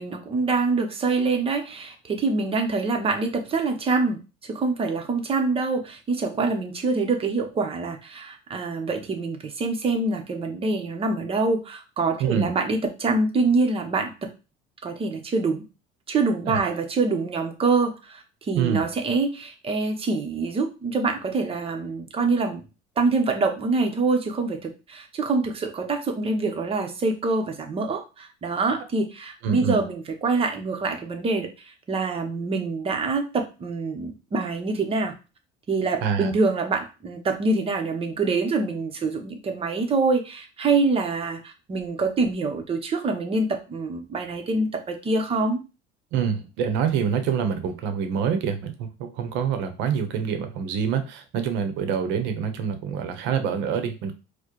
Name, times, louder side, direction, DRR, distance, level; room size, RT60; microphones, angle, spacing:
voice 1, 0.0-14.1 14.8-15.6 16.1-22.6 23.0-31.5 31.9-35.1 35.7-45.6, right 3 dB, 30° right, 4 dB, 0.8 m, -25 dB
voice 2, 18.5-18.9 29.4-29.8 36.0-36.3 46.1-54.1, right 7 dB, 75° right, 8 dB, 0.8 m, -26 dB
4.6 x 2.2 x 3.0 m, 0.30 s
cardioid pair, 120°, 19 cm